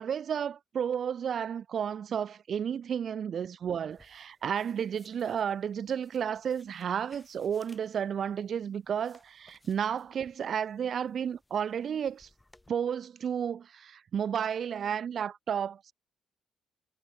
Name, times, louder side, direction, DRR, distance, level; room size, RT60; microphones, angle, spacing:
voice 1, 0.0-12.3 12.7-15.9, right 8 dB, 55° right, 0.7 m, -32 dB
sound 1, 3.9-12.7, left 1 dB, 10° left, 4.6 m, -64 dB
cardioid pair, 90°, 0 cm